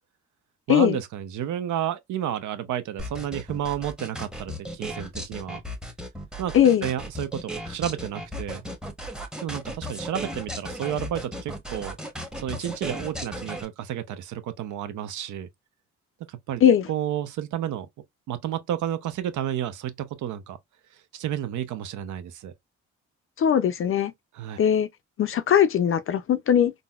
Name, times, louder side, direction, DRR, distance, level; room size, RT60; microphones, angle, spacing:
voice 1, 0.7-5.6 6.4-8.7 9.4-12.0 12.4-15.5 16.3-16.6 16.9-17.9 18.3-20.6 21.1-22.5 24.3-24.6, right 10 dB, 75° right, 0.7 m, -31 dB
sound 1, 3.0-13.6, equal, 5° right, 0.8 m, -35 dB
voice 2, 6.5-6.9 16.6-16.9 23.4-24.1 24.6-24.9 25.2-26.7, left 9 dB, 45° left, 0.4 m, -20 dB
3.9 x 2.1 x 2.3 m
cardioid pair, 90°, 30 cm